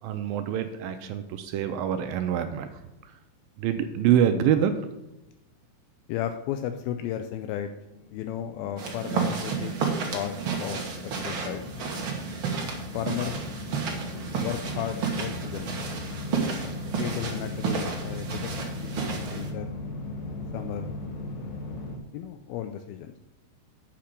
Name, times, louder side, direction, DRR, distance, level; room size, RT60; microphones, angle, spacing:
voice 1, 0.0-3.2 3.6-4.7, right 9 dB, 80° right, 7 dB, 2.2 m, -26 dB
voice 2, 6.1-7.7 8.1-9.8 10.1-11.7 12.9-13.4 14.4-15.7 17.0-19.8 20.5-20.9 22.1-23.2, left 10 dB, 80° left, 7 dB, 2.4 m, -34 dB
sound 1, 7.9-22.0, left 2 dB, 60° left, 2.0 m, -38 dB
sound 2, 8.8-19.5, right 5 dB, 60° right, 1.3 m, -32 dB
8.5 x 5.8 x 6.6 m, 0.95 s
omnidirectional pair, 4.4 m